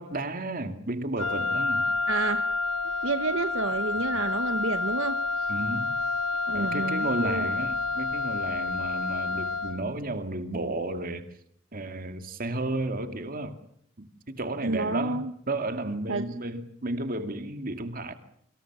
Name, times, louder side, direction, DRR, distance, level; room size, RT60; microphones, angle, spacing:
voice 1, 0.0-1.8 4.0-4.2 5.5-6.0 6.5-11.3 11.7-13.6 14.0-18.1, right 2 dB, 45° right, 2.3 m, -33 dB
Wind instrument woodwind instrument, 1.2-9.9, left 3 dB, 75° left, 1.7 m, -29 dB
voice 2, 2.1-2.5 3.0-5.5 6.5-7.5 14.6-15.3 16.1-16.3, right 3 dB, 75° right, 1.0 m, -30 dB
28.0 x 25.5 x 6.1 m
head